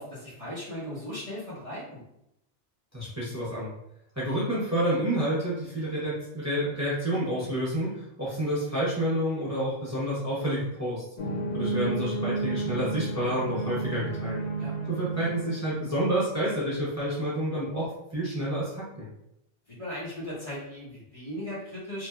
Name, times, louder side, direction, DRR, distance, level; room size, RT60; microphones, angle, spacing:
voice 1, 0.0-2.0 11.3-11.4 14.6-14.7 19.7-22.1, left 1 dB, 35° left, -8 dB, 1.0 m, -38 dB
voice 2, 2.9-3.7 4.2-11.0 11.5-14.4 14.9-17.9 18.1-19.1, equal, 20° right, -8 dB, 0.8 m, -29 dB
sound 1, 11.2-16.2, right 3 dB, 55° left, 0.5 m, -32 dB
3.0 x 2.6 x 2.2 m, 0.80 s
omnidirectional pair, 1.1 m